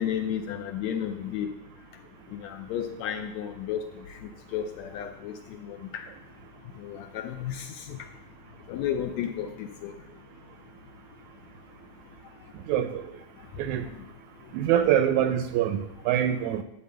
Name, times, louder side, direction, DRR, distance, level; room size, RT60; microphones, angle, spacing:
voice 1, 0.0-1.5 2.3-3.9 4.5-6.0 6.8-8.0 8.7-9.9, left 9 dB, 75° left, 6 dB, 1.7 m, -32 dB
voice 2, 12.5-13.0 13.6-13.9 14.5-16.6, right 10 dB, 80° right, 10 dB, 1.7 m, -25 dB
11.5 x 4.2 x 7.7 m, 0.92 s
omnidirectional pair, 3.6 m